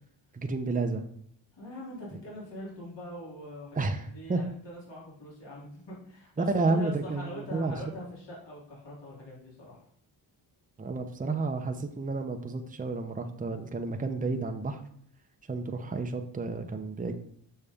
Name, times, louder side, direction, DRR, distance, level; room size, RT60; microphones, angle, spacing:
voice 1, 0.3-1.1 3.7-4.4 6.4-7.8 10.8-14.8 15.5-17.1, right 3 dB, 20° right, 5 dB, 0.8 m, -31 dB
voice 2, 1.5-9.9, left 1 dB, 65° left, -5 dB, 3.1 m, -43 dB
6.9 x 5.5 x 3.6 m, 0.66 s
cardioid pair, 70°, 45 cm